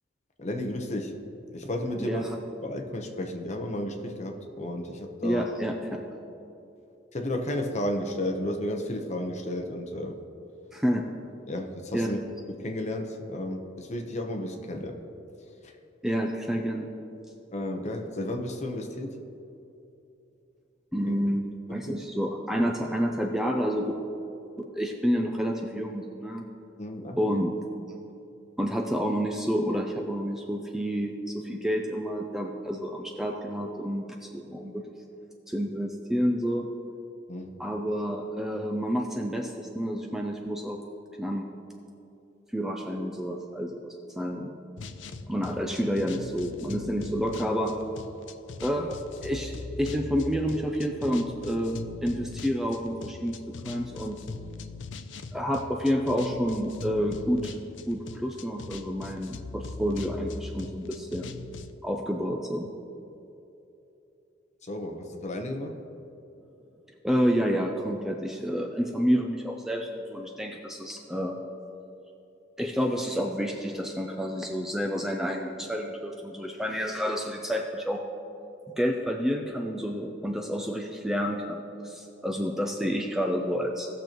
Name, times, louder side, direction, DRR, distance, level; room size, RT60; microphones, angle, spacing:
voice 1, 0.4-1.1 1.5-2.2 2.6-5.5 7.1-10.2 11.5-12.2 12.5-15.0 15.6-15.7 17.5-19.1 21.0-21.2 21.9-22.0 26.8-27.4 37.3-37.6 64.6-65.8, left 1 dB, 35° left, 3 dB, 0.9 m, -33 dB
voice 2, 5.2-6.0 10.7-11.1 11.9-12.1 16.0-16.9 20.9-21.4 21.7-24.0 24.6-26.4 27.2-27.5 28.6-35.0 35.5-36.7 37.6-40.8 41.2-41.5 42.5-43.8 44.2-44.5 45.3-47.8 48.6-49.5 49.8-54.2 55.3-57.6 57.9-61.4 61.8-62.7 67.0-71.4 72.6-78.0 78.8-83.9, equal, ahead, 1 dB, 0.5 m, -29 dB
sound 1, 44.8-61.7, left 4 dB, 75° left, 0.5 m, -41 dB
17.0 x 6.6 x 3.0 m, 2.8 s
head